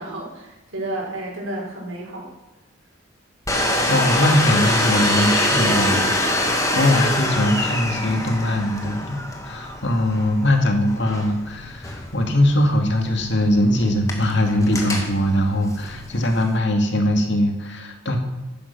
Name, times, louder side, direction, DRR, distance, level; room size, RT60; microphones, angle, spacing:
voice 1, 0.0-2.3, right 1 dB, 75° right, -1 dB, 5.5 m, -31 dB
Domestic sounds home sounds, 3.5-16.6, left 1 dB, 15° left, 2.2 m, -25 dB
voice 2, 3.9-18.2, left 1 dB, 60° left, 4 dB, 2.5 m, -21 dB
15.0 x 11.5 x 6.2 m, 1.1 s
head